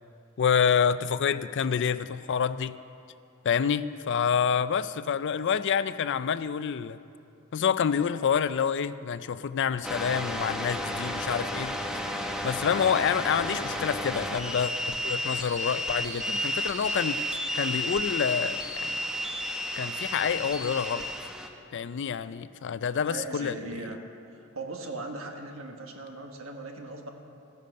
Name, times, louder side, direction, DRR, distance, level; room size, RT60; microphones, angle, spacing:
voice 1, 0.4-2.8 3.4-7.0 7.5-11.7 12.4-19.0 19.7-21.1 21.7-23.8, left 7 dB, 60° left, 14 dB, 0.4 m, -27 dB
sound 1, 9.8-21.5, left 1 dB, 5° right, 0.9 m, -32 dB
voice 2, 15.2-15.6 23.0-24.0 24.3-27.1, right 2 dB, 75° right, 3 dB, 1.4 m, -39 dB
15.0 x 10.5 x 6.6 m, 2.6 s
head